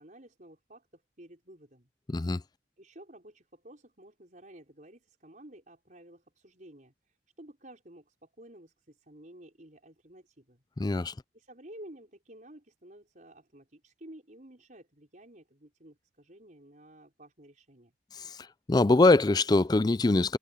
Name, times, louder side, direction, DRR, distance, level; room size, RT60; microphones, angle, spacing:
voice 1, 0.0-1.9 2.8-10.6 11.1-17.9, right 1 dB, 45° right, 5.2 m, -52 dB
voice 2, 2.1-2.4 10.8-11.1 18.7-20.4, left 2 dB, 20° left, 0.4 m, -23 dB
head